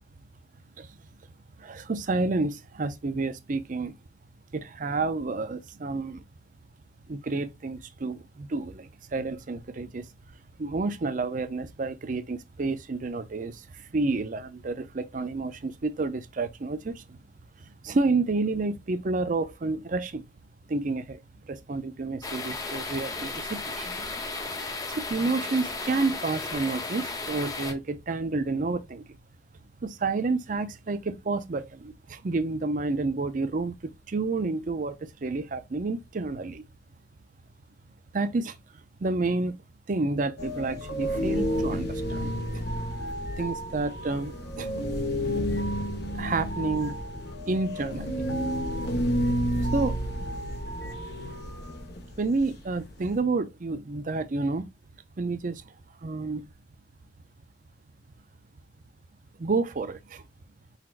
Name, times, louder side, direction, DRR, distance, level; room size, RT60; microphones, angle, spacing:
voice 1, 1.6-4.0 4.5-6.2 7.1-10.1 10.6-17.2 17.8-20.2 20.7-23.9 24.9-29.0 29.8-36.6 38.1-38.6 39.0-39.6 39.9-42.3 43.4-44.7 46.2-47.0 47.5-48.3 49.7-49.9 52.2-54.7 55.2-55.6 56.0-56.4 59.4-60.2, right 3 dB, 45° right, 0.5 m, -30 dB
sound 1, 22.2-27.7, left 3 dB, 20° left, 0.7 m, -34 dB
sound 2, 40.4-53.2, equal, 60° left, 1.2 m, -30 dB
4.4 x 4.0 x 2.5 m
head